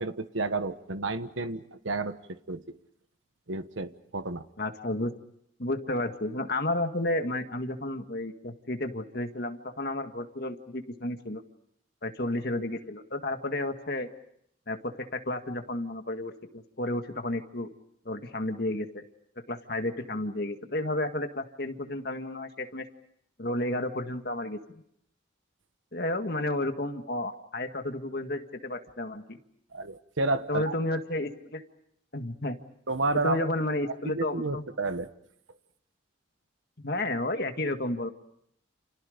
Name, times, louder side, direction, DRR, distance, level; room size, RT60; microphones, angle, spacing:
voice 1, 0.0-2.7 3.5-4.4 29.7-30.8 32.9-33.4 34.0-35.1, right 3 dB, 85° right, 10 dB, 1.3 m, -31 dB
voice 2, 4.6-5.1 5.6-11.4 12.0-14.1 14.7-17.7 18.1-19.0 19.5-22.9 23.4-24.8 25.9-29.4 30.5-31.6 32.1-32.6 33.2-34.6 36.8-38.1, left 1 dB, 55° left, 6 dB, 1.9 m, -32 dB
29.0 x 29.0 x 5.2 m, 0.71 s
head